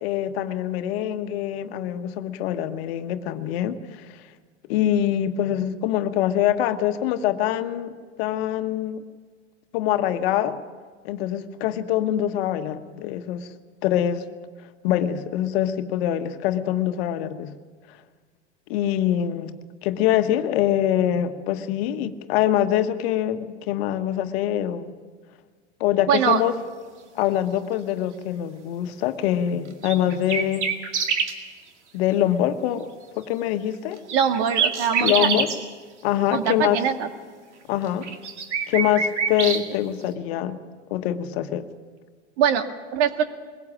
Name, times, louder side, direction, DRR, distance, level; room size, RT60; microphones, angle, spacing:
voice 1, 0.0-4.2 4.7-7.9 8.2-9.0 9.7-10.6 11.0-13.5 13.8-14.2 14.8-17.6 18.7-24.9 25.8-26.5 27.1-30.7 31.9-34.0 35.0-35.5 36.0-36.8 37.7-38.1 38.7-40.6 40.9-41.6, left 11 dB, 60° left, 9 dB, 1.3 m, -24 dB
voice 2, 26.1-26.4 34.1-35.3 36.3-37.1 42.4-42.7 42.9-43.2, right 8 dB, 60° right, 7 dB, 1.9 m, -22 dB
sound 1, 29.8-31.3 34.1-35.6 37.9-39.6, right 6 dB, 80° right, 2.4 m, -25 dB
22.0 x 16.5 x 7.5 m, 1.5 s
hypercardioid pair, 95°, 35 cm